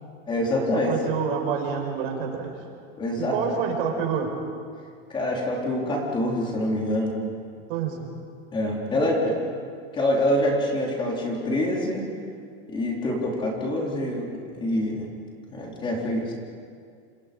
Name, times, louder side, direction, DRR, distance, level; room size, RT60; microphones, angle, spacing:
voice 1, 0.3-0.9 3.0-3.6 5.1-7.2 8.5-9.4 9.9-12.0 12.7-14.3 14.6-15.1 15.5-16.3, left 1 dB, 15° left, -2 dB, 3.8 m, -25 dB
voice 2, 0.8-2.5 3.1-4.3 7.7-8.1 8.9-9.3, right 7 dB, 65° right, 2 dB, 5.6 m, -28 dB
29.0 x 28.5 x 5.3 m, 2.2 s
supercardioid pair, 165°, 31 cm